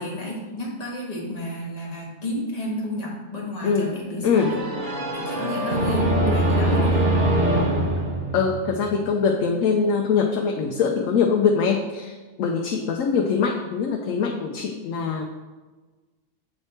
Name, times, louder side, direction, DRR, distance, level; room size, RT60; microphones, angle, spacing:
voice 1, 0.0-4.6 5.1-7.1, equal, 30° left, -3 dB, 1.4 m, -31 dB
voice 2, 4.2-4.5 8.3-15.3, left 5 dB, 90° left, 2 dB, 1.0 m, -23 dB
sound 1, 4.3-9.1, right 1 dB, 40° right, 1.0 m, -23 dB
7.7 x 3.3 x 4.2 m, 1.3 s
omnidirectional pair, 1.3 m